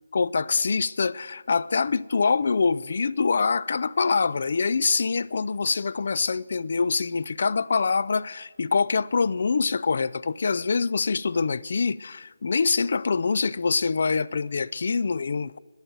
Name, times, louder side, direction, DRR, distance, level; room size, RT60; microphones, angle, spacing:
voice 1, 0.1-15.6, left 4 dB, 50° left, 0.3 m, -25 dB
11.5 x 8.9 x 9.1 m
figure-of-eight pair, 150°, 0 cm